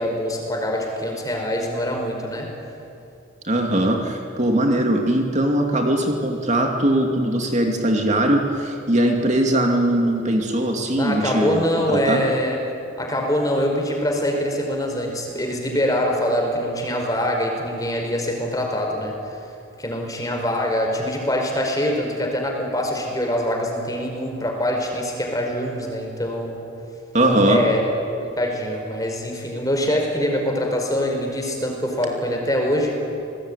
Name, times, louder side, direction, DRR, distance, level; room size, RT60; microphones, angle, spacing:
voice 1, 0.0-2.5 10.9-12.6 13.0-19.2 19.8-26.7 27.5-27.8 28.2-33.0, equal, 20° left, 2 dB, 4.9 m, -24 dB
voice 2, 3.4-12.2 27.1-27.6, right 1 dB, 35° right, 2 dB, 2.5 m, -20 dB
29.5 x 20.0 x 9.9 m, 2.7 s
head